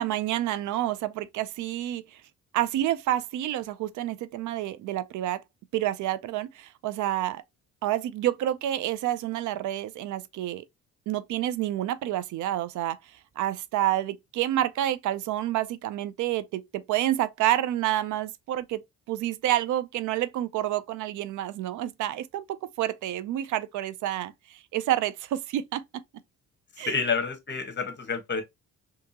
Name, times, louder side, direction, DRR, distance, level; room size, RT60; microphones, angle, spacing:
voice 1, 0.0-2.2 2.5-5.4 5.7-7.4 7.8-10.6 11.1-13.0 13.4-18.8 19.1-25.8 26.8-26.9, right 13 dB, 80° right, 0.5 m, -29 dB
voice 2, 26.8-28.4, left 5 dB, 35° left, 1.2 m, -29 dB
3.5 x 2.8 x 2.7 m
cardioid pair, 90°, 30 cm